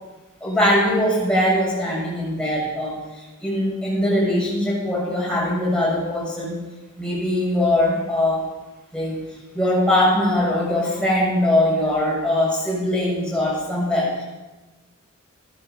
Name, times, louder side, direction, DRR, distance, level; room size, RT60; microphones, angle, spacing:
voice 1, 0.4-6.6 7.0-8.4 8.9-9.2 9.5-14.2, left 1 dB, 5° left, -6 dB, 6.6 m, -21 dB
16.0 x 13.0 x 5.7 m, 1.1 s
head